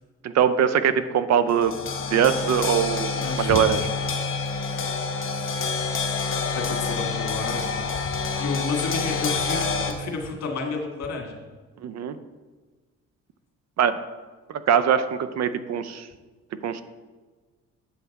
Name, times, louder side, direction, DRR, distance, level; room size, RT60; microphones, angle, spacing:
voice 1, 0.2-1.7 2.1-3.8 11.8-12.2 13.8-14.0 14.5-16.1 16.6-16.8, right 8 dB, 60° right, 12 dB, 0.6 m, -22 dB
sound 1, 1.5-9.9, left 4 dB, 45° left, 1.2 m, -27 dB
voice 2, 3.1-3.6 5.4-5.7 6.5-7.9 8.4-11.4, left 4 dB, 60° left, 1 dB, 1.7 m, -31 dB
8.3 x 5.8 x 4.1 m, 1.3 s
cardioid pair, 90°, 30 cm